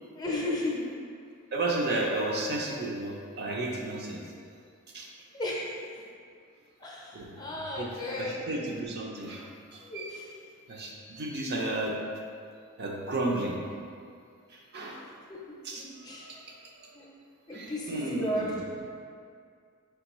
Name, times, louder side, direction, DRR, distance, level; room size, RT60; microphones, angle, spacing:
voice 1, 0.1-0.8 5.3-5.7 6.8-8.4 9.8-10.3 15.3-15.4 15.7-16.3 16.9-17.1 17.5-18.5, left 1 dB, 20° left, -4 dB, 0.6 m, -34 dB
voice 2, 1.5-4.2 4.9-5.1 7.1-10.2 10.7-12.0 12.8-13.6 14.5-15.1 15.6-16.9 17.5-18.6, right 2 dB, 50° right, -1 dB, 0.5 m, -33 dB
4.7 x 3.4 x 3.0 m, 2.3 s
head